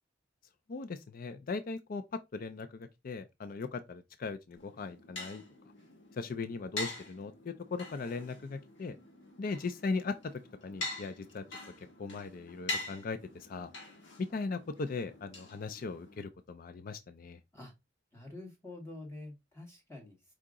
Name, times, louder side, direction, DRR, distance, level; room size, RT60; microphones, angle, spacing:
voice 1, 0.7-5.4 6.1-9.0 9.4-10.2 10.6-11.4 11.8-13.7 14.2-17.4, left 4 dB, 50° left, 0.4 m, -38 dB
sound 1, 4.6-16.2, left 2 dB, 80° left, 1.8 m, -44 dB
voice 2, 18.1-20.2, left 2 dB, 15° left, 1.5 m, -47 dB
4.9 x 2.8 x 3.6 m
head